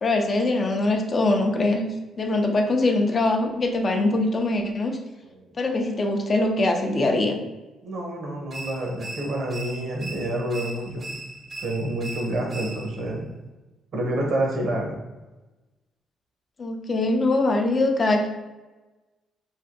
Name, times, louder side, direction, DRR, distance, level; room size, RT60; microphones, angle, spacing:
voice 1, 0.0-1.8 2.2-5.0 5.6-7.4 16.6-18.3, left 2 dB, 40° left, 3 dB, 0.4 m, -22 dB
voice 2, 7.8-11.2 11.6-13.3 13.9-15.0, right 1 dB, 65° right, 0 dB, 0.8 m, -28 dB
sound 1, 8.5-13.1, right 2 dB, 40° right, 0.5 m, -39 dB
3.2 x 2.6 x 2.5 m, 1.1 s
cardioid pair, 90°, 0 cm